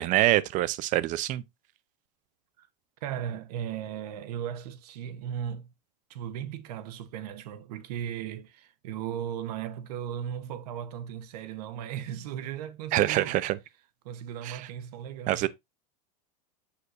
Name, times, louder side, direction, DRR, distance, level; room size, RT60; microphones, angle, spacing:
voice 1, 0.0-1.4 12.9-13.6 14.5-14.6 15.3-15.5, right 15 dB, 40° right, 0.6 m, -25 dB
voice 2, 3.0-5.7 6.1-13.4 14.0-15.5, right 9 dB, 70° right, 1.1 m, -36 dB
7.0 x 6.5 x 2.5 m
supercardioid pair, 130°, 21 cm